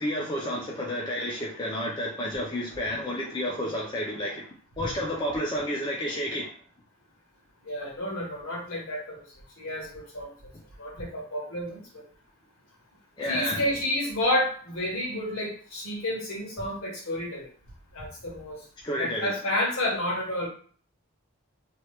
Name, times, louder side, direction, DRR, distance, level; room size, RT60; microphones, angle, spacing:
voice 1, 0.0-4.5 4.8-6.5 13.2-13.6 18.8-19.4, equal, 20° left, 0.5 m, -30 dB
voice 2, 7.6-9.2 9.6-10.3 10.8-12.0 13.3-17.5 17.9-18.6 19.0-20.5, left 1 dB, 70° left, 1.2 m, -30 dB
3.0 x 2.3 x 3.2 m
head